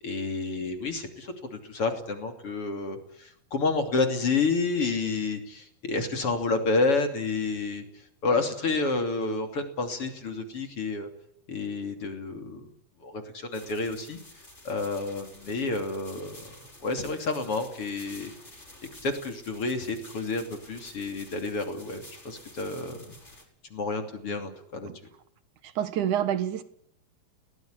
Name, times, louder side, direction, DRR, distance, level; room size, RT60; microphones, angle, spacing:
voice 1, 0.0-7.8 8.2-11.1 11.5-12.7 13.0-14.2 14.6-16.5 16.8-18.3 19.0-23.2 23.7-24.9, left 3 dB, 40° left, 6 dB, 3.3 m, -30 dB
sound 1, 13.5-23.4, left 1 dB, 15° left, 5.7 m, -50 dB
voice 2, 25.6-26.6, right 10 dB, 60° right, 12 dB, 2.4 m, -28 dB
21.0 x 18.5 x 9.9 m, 0.70 s
omnidirectional pair, 4.7 m